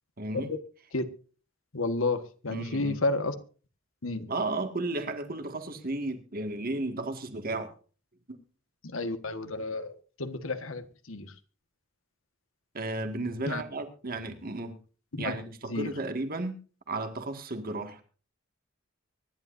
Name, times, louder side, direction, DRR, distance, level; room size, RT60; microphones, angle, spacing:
voice 1, 0.2-0.5 2.5-3.0 4.3-7.7 8.3-8.4 12.7-14.8 15.2-16.6 16.9-18.0, right 2 dB, 45° right, 1.9 m, -34 dB
voice 2, 1.7-3.3 4.0-4.3 8.8-11.3 13.5-13.6 15.1-15.3 15.7-15.9, left 2 dB, 90° left, 1.5 m, -31 dB
24.5 x 11.0 x 2.6 m
head